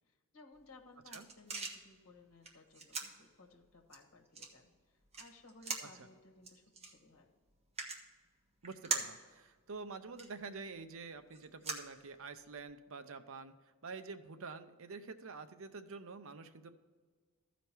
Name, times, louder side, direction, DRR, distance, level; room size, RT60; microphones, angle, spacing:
voice 1, 0.1-7.3, left 2 dB, 65° left, 1 dB, 1.5 m, -60 dB
sound 1, 0.5-12.6, right 4 dB, 30° right, 1.3 m, -45 dB
voice 2, 8.6-16.7, right 4 dB, 65° right, 10 dB, 0.7 m, -48 dB
14.5 x 5.1 x 4.5 m, 1.4 s
head